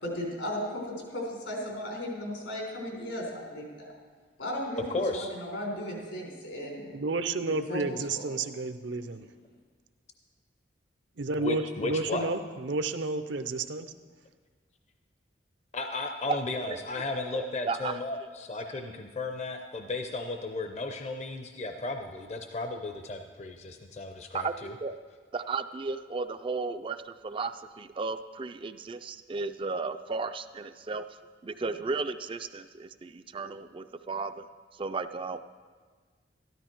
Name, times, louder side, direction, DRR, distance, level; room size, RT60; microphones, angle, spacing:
voice 1, 0.0-3.9 4.4-7.0 7.4-8.2, left 1 dB, 85° left, -1 dB, 3.9 m, -36 dB
voice 2, 4.9-5.3 11.4-12.3 15.7-24.7, left 2 dB, 35° left, 6 dB, 0.6 m, -34 dB
voice 3, 6.9-9.3 11.2-13.9, right 3 dB, 70° right, 10 dB, 0.7 m, -31 dB
voice 4, 17.3-18.0 24.3-24.9 25.3-31.1 31.4-34.5 34.7-35.4, right 4 dB, 25° right, 10 dB, 0.3 m, -34 dB
13.5 x 12.5 x 4.5 m, 1.5 s
head